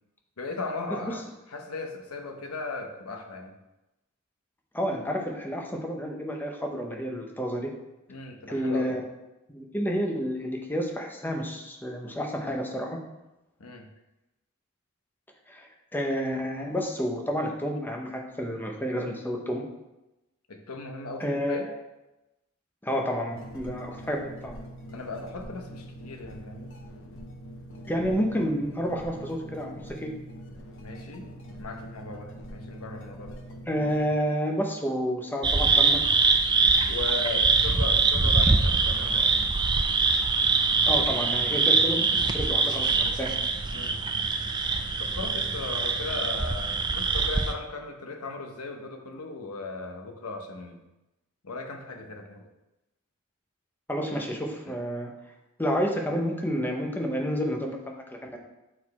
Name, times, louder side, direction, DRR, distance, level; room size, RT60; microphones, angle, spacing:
voice 1, 0.4-3.6 8.1-8.9 13.6-13.9 20.5-21.7 24.9-26.7 30.8-31.3 31.6-33.4 36.9-39.5 43.7-44.0 45.0-50.8 51.4-52.4 54.7-54.8, left 3 dB, 85° left, 4 dB, 0.9 m, -37 dB
voice 2, 4.7-7.7 8.5-9.1 9.5-13.0 15.5-19.6 21.2-21.8 22.8-24.2 24.4-24.6 27.9-30.1 33.7-36.0 40.9-43.4 53.9-55.1 55.6-58.4, equal, 10° left, 1 dB, 0.8 m, -30 dB
sound 1, 23.3-34.1, equal, 60° left, 0.8 m, -43 dB
sound 2, 35.4-47.5, right 4 dB, 20° right, 0.3 m, -23 dB
6.6 x 4.4 x 4.2 m, 0.98 s
head